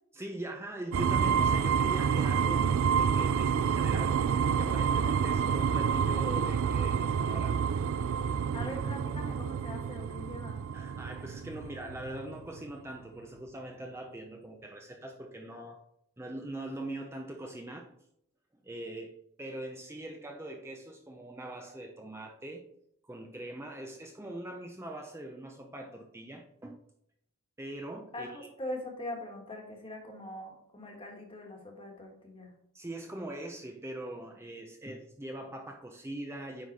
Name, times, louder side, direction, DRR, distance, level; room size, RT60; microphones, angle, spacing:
voice 1, 0.1-7.6 8.6-8.7 10.7-15.8 16.2-17.9 18.6-19.1 19.4-22.6 23.0-26.8 27.6-28.5 32.7-36.7, right 1 dB, 10° right, 2 dB, 0.6 m, -42 dB
sound 1, 0.9-12.7, right 7 dB, 65° right, 0.3 m, -28 dB
voice 2, 8.5-10.7 28.1-32.5, left 1 dB, 25° left, 2 dB, 1.5 m, -42 dB
9.6 x 3.9 x 4.1 m, 0.74 s
head